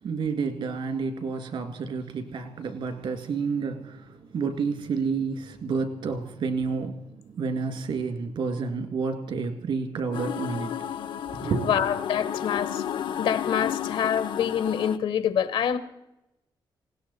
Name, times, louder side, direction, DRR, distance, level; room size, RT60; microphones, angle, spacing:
voice 1, 0.0-10.7 11.3-11.8, right 5 dB, 75° right, 8 dB, 2.3 m, -30 dB
sound 1, 10.1-15.0, left 9 dB, 70° left, 0.5 m, -32 dB
voice 2, 11.6-12.8 13.2-15.8, left 8 dB, 90° left, 13 dB, 1.1 m, -26 dB
20.0 x 17.0 x 4.2 m, 0.90 s
cardioid pair, 115°, 9 cm